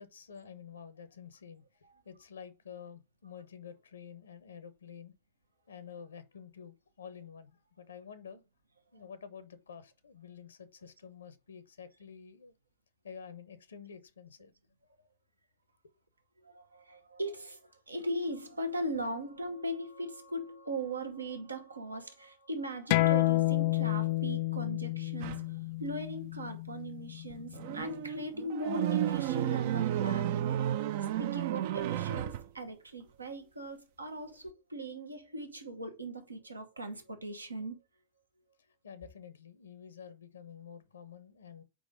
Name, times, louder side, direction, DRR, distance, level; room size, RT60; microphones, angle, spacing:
voice 1, 0.0-1.6 2.1-5.1 5.7-8.4 8.9-12.5 13.0-14.5 15.8-15.9 38.8-41.6, left 7 dB, 70° left, 0.7 m, -49 dB
voice 2, 16.4-25.4 25.8-30.5 31.2-37.8, right 1 dB, 80° right, 1.1 m, -39 dB
sound 1, 22.9-28.1, left 18 dB, 50° left, 0.3 m, -30 dB
sound 2, 25.2-25.4 27.3-32.4, right 11 dB, 50° right, 0.5 m, -32 dB
4.9 x 3.9 x 4.9 m
figure-of-eight pair, 90°, 0 cm